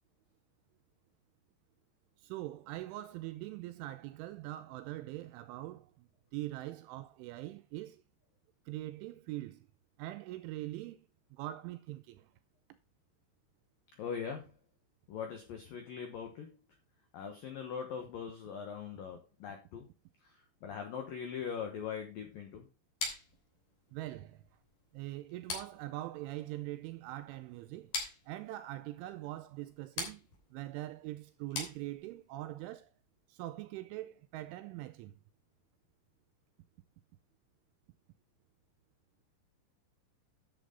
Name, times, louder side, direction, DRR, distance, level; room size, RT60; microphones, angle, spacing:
voice 1, 2.2-5.9 6.3-8.0 8.7-9.7 10.0-11.0 11.4-12.3 23.9-24.4 24.9-27.9 28.3-30.2 30.5-32.9 33.3-35.1, right 16 dB, 85° right, 2.8 m, -42 dB
voice 2, 14.0-14.6 15.1-16.5 17.1-19.9 20.2-22.7, left 7 dB, 80° left, 2.0 m, -41 dB
sound 1, 23.0-32.3, left 3 dB, 45° left, 4.3 m, -44 dB
11.0 x 7.5 x 3.8 m
omnidirectional pair, 6.0 m